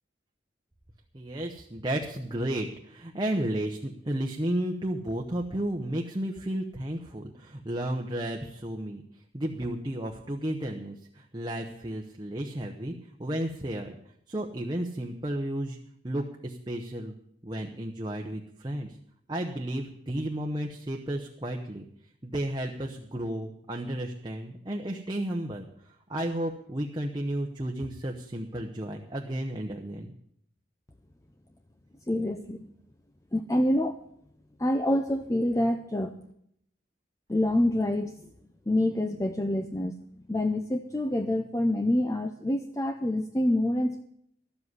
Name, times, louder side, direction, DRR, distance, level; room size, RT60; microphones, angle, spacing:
voice 1, 1.1-9.0 9.3-12.9 13.2-14.0 14.3-15.8 16.0-17.2 17.4-19.0 19.3-21.8 22.2-30.1, right 1 dB, 25° right, 1 dB, 0.9 m, -33 dB
voice 2, 32.1-32.7 33.3-34.0 34.6-36.1 37.3-38.2 38.7-40.0 40.3-44.0, left 1 dB, 15° left, 7 dB, 0.6 m, -26 dB
12.5 x 7.7 x 9.6 m, 0.71 s
head